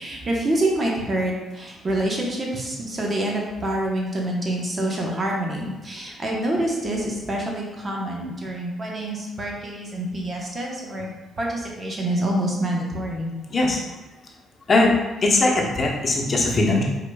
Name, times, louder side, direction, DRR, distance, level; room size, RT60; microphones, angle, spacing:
voice 1, 0.0-11.1 11.4-13.3, right 1 dB, 35° right, -1 dB, 1.1 m, -26 dB
voice 2, 15.2-16.8, left 2 dB, 40° left, -1 dB, 0.9 m, -20 dB
5.0 x 3.9 x 2.3 m, 1.1 s
supercardioid pair, 70°, 0 cm